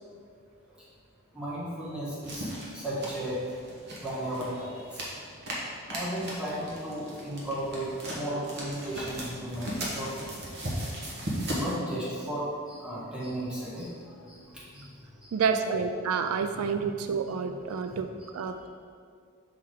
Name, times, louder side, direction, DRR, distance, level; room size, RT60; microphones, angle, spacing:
voice 1, 1.3-3.4 4.0-5.0 5.9-10.3 11.5-14.4 14.7-14.9 15.2-15.3 15.6-15.7 16.4-16.7 17.3-17.5 17.9-18.0, right 1 dB, 5° right, -9 dB, 1.3 m, -35 dB
sound 1, 2.2-11.7, equal, 50° right, 1.2 m, -37 dB
voice 2, 15.3-18.7, right 5 dB, 75° right, 7 dB, 0.3 m, -29 dB
5.8 x 3.7 x 4.6 m, 2.2 s
head